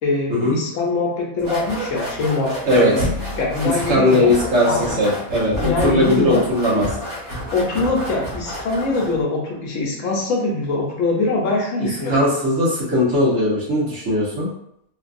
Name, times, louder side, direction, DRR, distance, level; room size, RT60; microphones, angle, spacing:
voice 1, 0.0-3.0 3.4-4.3 4.7-5.0 5.6-6.4 7.5-12.2, left 2 dB, 70° left, -2 dB, 0.9 m, -23 dB
sound 1, 1.4-9.2, equal, 80° right, 1.5 m, -29 dB
voice 2, 3.9-7.0 12.1-14.5, left 1 dB, 65° right, -7 dB, 1.3 m, -18 dB
3.1 x 2.2 x 2.5 m, 0.75 s
omnidirectional pair, 1.5 m